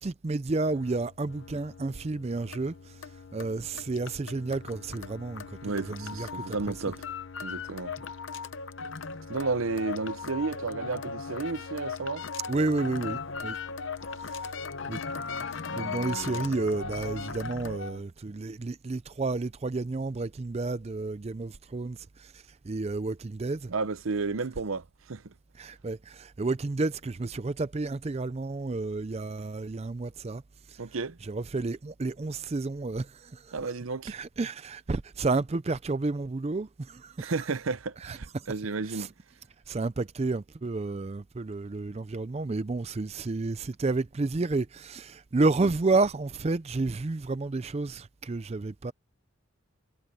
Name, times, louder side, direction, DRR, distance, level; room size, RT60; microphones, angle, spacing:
voice 1, 0.0-3.0 3.3-6.6 12.5-13.6 14.2-14.4 14.9-15.0 15.7-23.7 25.6-30.4 30.7-30.8 31.2-33.5 34.1-37.3 38.0-38.5 38.9-39.1 39.7-48.9, right 3 dB, 30° right, 0.4 m, -31 dB
sound 1, 0.6-18.0, left 4 dB, 60° left, 0.8 m, -38 dB
voice 2, 5.6-7.0 7.4-7.9 9.3-12.2 23.7-25.3 30.8-31.2 33.5-34.1 37.2-39.1, right 4 dB, 70° right, 0.7 m, -32 dB
head